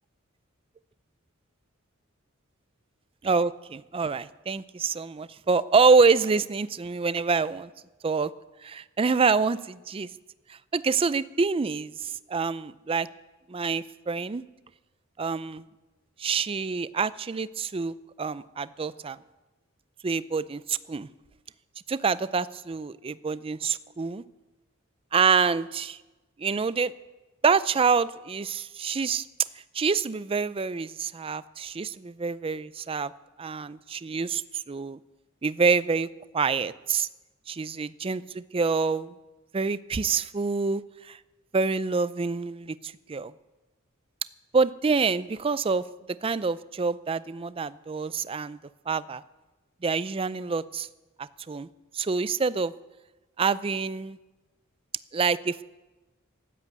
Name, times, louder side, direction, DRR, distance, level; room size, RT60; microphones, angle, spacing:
voice 1, 3.2-7.7 8.0-8.3 8.6-10.1 10.5-13.1 13.5-14.4 15.2-15.6 16.2-19.2 20.0-21.1 21.9-24.2 25.1-26.0 26.4-26.9 27.4-29.2 29.7-33.1 33.4-35.0 35.4-36.1 36.3-37.1 37.5-39.2 39.5-41.2 41.5-43.3 44.5-45.8 46.2-48.6 48.9-49.2 49.8-50.9 51.2-51.7 51.9-52.7 53.4-54.2 55.1-55.6, right 5 dB, 25° right, 16 dB, 0.4 m, -26 dB
13.5 x 11.0 x 8.1 m, 1.1 s
head